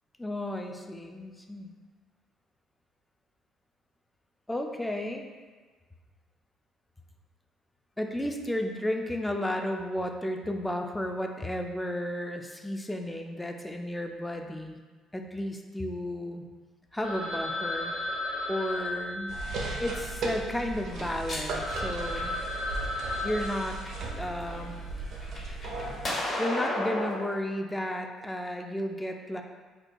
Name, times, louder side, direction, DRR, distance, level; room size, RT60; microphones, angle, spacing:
voice 1, 0.2-1.7 4.5-5.3 8.0-14.8 15.1-16.4 16.9-17.9 18.5-19.4 19.8-22.4 23.2-23.8 24.2-24.8 26.4-29.4, left 1 dB, 10° left, 3 dB, 0.4 m, -33 dB
Telephone, 17.0-20.8 21.3-21.4 21.6-24.5, left 1 dB, 80° left, 1.0 m, -35 dB
sound 1, 19.3-26.1, right 3 dB, 65° right, 0.5 m, -36 dB
sound 2, 20.9-22.6 23.2-24.1 24.5-27.2, left 1 dB, 45° left, 1.1 m, -34 dB
4.5 x 2.2 x 2.5 m, 1.4 s
hypercardioid pair, 55°, 0 cm